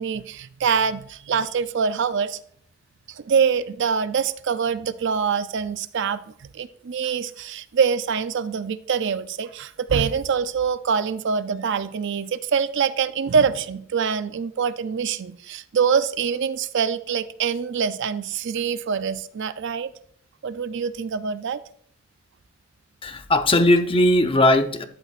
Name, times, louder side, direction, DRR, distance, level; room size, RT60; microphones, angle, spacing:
voice 1, 0.0-2.4 3.1-19.9 20.4-21.6, right 6 dB, 60° right, 0.5 m, -24 dB
voice 2, 23.0-24.8, left 1 dB, 25° left, 0.8 m, -18 dB
12.5 x 11.0 x 2.5 m
head